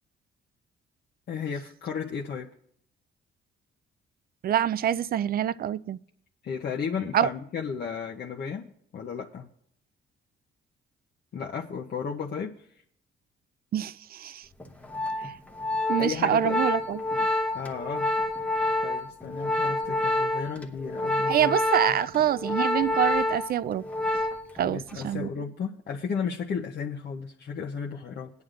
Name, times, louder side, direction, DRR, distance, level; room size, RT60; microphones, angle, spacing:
voice 1, 1.3-2.5 6.4-9.5 11.3-12.5 16.0-16.6 17.5-18.1 18.8-21.6 24.6-28.3, left 6 dB, 55° left, 0.8 m, -34 dB
voice 2, 4.4-6.0 7.1-7.3 13.7-14.5 15.2-15.3 15.9-17.3 21.3-23.8 24.6-25.3, right 10 dB, 50° right, 0.4 m, -26 dB
Organ, 14.6-24.6 24.9-25.2, left 2 dB, 5° left, 1.0 m, -28 dB
21.5 x 9.4 x 2.5 m
cardioid pair, 90°, 20 cm